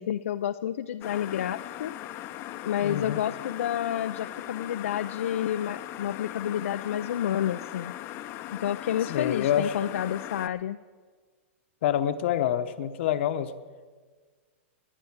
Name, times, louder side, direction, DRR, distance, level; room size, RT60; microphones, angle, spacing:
voice 1, 0.0-1.9 2.6-7.9 8.5-10.8, left 10 dB, 80° left, 9 dB, 0.4 m, -30 dB
sound 1, 1.0-10.5, left 13 dB, 35° left, 0.7 m, -39 dB
voice 2, 2.8-3.2 9.1-9.8 11.8-13.5, left 10 dB, 60° left, 10 dB, 0.9 m, -27 dB
20.5 x 9.4 x 4.7 m, 1.5 s
hypercardioid pair, 135°, 7 cm